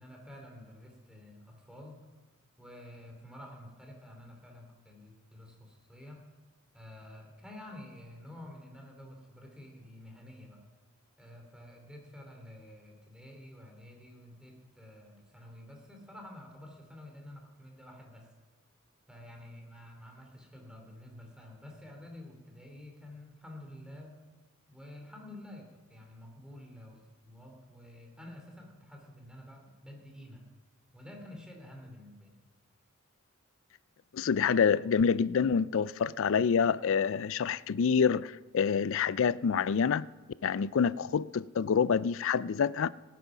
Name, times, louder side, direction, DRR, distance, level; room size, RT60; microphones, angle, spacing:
voice 1, 0.0-2.0 2.6-6.2 6.7-10.6 11.2-18.3 19.1-24.2 24.7-30.5 30.9-32.4, left 1 dB, 5° right, 1 dB, 2.7 m, -50 dB
voice 2, 34.1-40.1 40.4-42.9, left 6 dB, 65° left, 19 dB, 0.4 m, -27 dB
17.0 x 9.4 x 6.0 m, 1.2 s
head